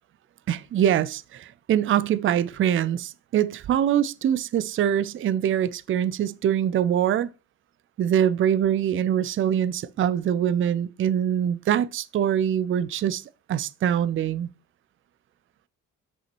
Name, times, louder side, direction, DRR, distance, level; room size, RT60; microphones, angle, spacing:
voice 1, 0.5-7.3 8.0-13.2 13.5-14.5, right 10 dB, 45° right, 0.4 m, -24 dB
6.0 x 5.5 x 3.0 m
cardioid pair, 90°, 30 cm